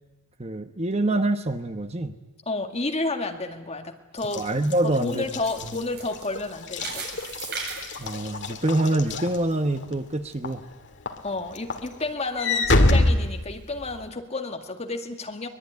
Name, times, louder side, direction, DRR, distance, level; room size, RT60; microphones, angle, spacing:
voice 1, 0.4-2.1 4.3-5.2 8.0-10.6, right 2 dB, 30° right, 8 dB, 1.1 m, -25 dB
voice 2, 2.5-4.5 4.8-7.1 11.2-15.5, left 2 dB, 30° left, 4 dB, 2.1 m, -31 dB
Walk footsteps / Slam, 4.2-9.9 10.4-10.7 11.1-14.1, left 2 dB, 55° left, 2.1 m, -26 dB
sound 1, 4.2-9.1 9.5-9.6 10.2-10.3, right 4 dB, 50° right, 8.0 m, -38 dB
23.5 x 21.5 x 9.6 m, 1.1 s
head